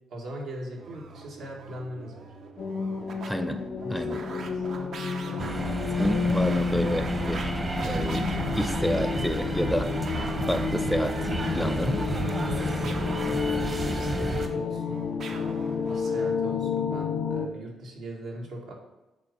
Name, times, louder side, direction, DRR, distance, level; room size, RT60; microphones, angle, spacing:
voice 1, 0.1-2.3 3.8-4.6 5.2-5.6 12.4-18.7, right 1 dB, 80° right, -2 dB, 1.8 m, -40 dB
sound 1, 0.7-16.4, right 4 dB, 65° right, 0.7 m, -44 dB
sound 2, 2.6-17.5, left 5 dB, 50° left, 0.5 m, -30 dB
voice 2, 3.3-3.6 3.9-4.2 6.0-8.3 8.5-9.9 10.5-11.2 11.5-12.0, equal, ahead, 9 dB, 0.5 m, -29 dB
sound 3, 5.4-14.5, right 3 dB, 35° right, 1.0 m, -31 dB
7.3 x 4.0 x 5.4 m, 1.0 s
cardioid pair, 90°, 0 cm